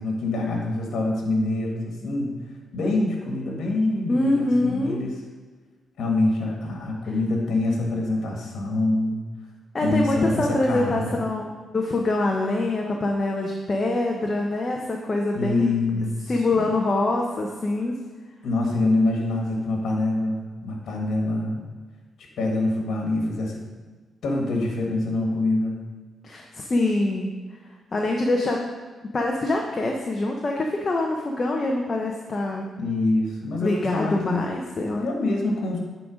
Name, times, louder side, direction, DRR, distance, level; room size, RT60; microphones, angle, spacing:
voice 1, 0.0-2.3 2.7-5.2 6.0-9.2 9.8-11.2 15.3-16.7 18.4-21.6 22.4-23.6 24.2-25.7 32.8-34.5 35.0-35.8, left 2 dB, 75° left, 0 dB, 1.5 m, -25 dB
voice 2, 4.1-5.0 9.7-11.5 11.7-15.7 16.3-18.0 26.2-27.4 27.9-28.6 29.1-32.7 33.6-35.1, left 2 dB, 35° left, 0 dB, 0.8 m, -24 dB
9.1 x 3.9 x 5.0 m, 1.4 s
cardioid pair, 90°, 0 cm